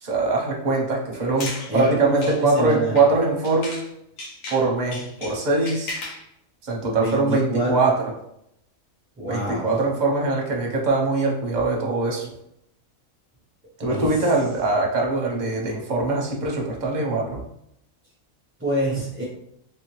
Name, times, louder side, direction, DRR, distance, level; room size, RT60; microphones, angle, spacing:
voice 1, 0.0-3.8 4.5-6.0 6.6-7.9 9.3-12.3 13.8-17.4, right 3 dB, 40° right, -1 dB, 0.8 m, -22 dB
sound 1, 1.1-3.9 4.2-6.3, left 2 dB, 75° left, 1.2 m, -36 dB
voice 2, 1.7-3.0 7.0-7.7 9.2-9.8 13.9-14.3 18.6-19.2, right 1 dB, 15° right, -6 dB, 0.5 m, -26 dB
3.2 x 2.8 x 3.0 m, 0.77 s
omnidirectional pair, 1.4 m